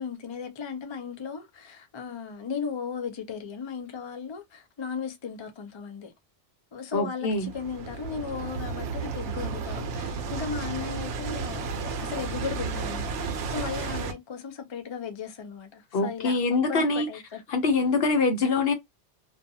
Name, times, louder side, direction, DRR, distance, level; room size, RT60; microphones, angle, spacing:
voice 1, 0.0-6.1 6.7-17.4, left 6 dB, 40° left, 0.4 m, -36 dB
voice 2, 6.9-7.5 15.9-17.1 17.5-18.7, left 3 dB, 60° left, 0.9 m, -24 dB
sound 1, 7.3-14.1, right 4 dB, 80° right, 0.9 m, -33 dB
2.5 x 2.3 x 2.6 m
omnidirectional pair, 1.2 m